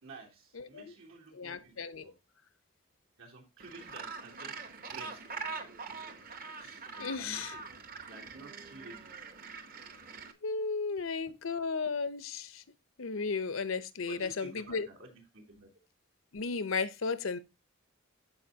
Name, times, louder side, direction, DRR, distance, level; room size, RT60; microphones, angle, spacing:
voice 1, 0.0-2.2 3.2-5.4 6.9-7.6 8.0-9.2 14.1-15.7, right 2 dB, 85° right, 3.4 m, -51 dB
voice 2, 0.5-0.9 1.3-2.1 7.0-7.5 10.4-12.6 13.0-14.9 16.3-17.4, left 4 dB, 75° left, 0.7 m, -34 dB
Gull seagull, 3.6-10.3, right 4 dB, 45° right, 0.9 m, -44 dB
14.0 x 4.9 x 2.8 m
head